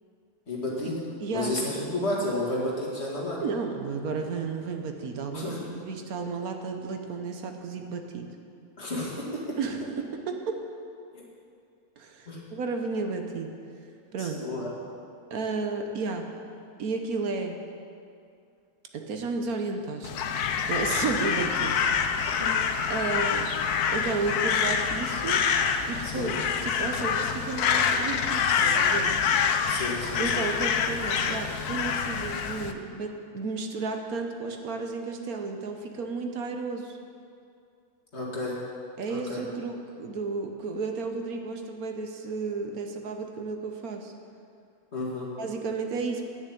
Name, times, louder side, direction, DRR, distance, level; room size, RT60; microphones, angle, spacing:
voice 1, 0.5-3.4 5.3-5.7 8.8-9.6 11.1-11.2 12.3-12.4 14.2-14.7 22.4-22.5 26.0-26.4 29.7-30.4 38.1-38.6 39.1-39.4 44.9-45.3, left 1 dB, 45° left, -4 dB, 2.4 m, -32 dB
voice 2, 1.2-1.5 3.4-8.3 9.6-9.8 10.1-10.6 12.0-13.5 14.1-14.4 15.3-16.3 16.8-17.6 18.9-20.1 20.6-21.8 22.9-23.5 23.9-25.4 25.9-29.2 30.2-37.0 39.0-44.1 45.4-46.3, right 4 dB, 70° right, 4 dB, 1.4 m, -32 dB
Crow, 20.0-32.7, left 6 dB, 85° left, 1.2 m, -26 dB
11.0 x 6.7 x 8.5 m, 2.4 s
omnidirectional pair, 1.6 m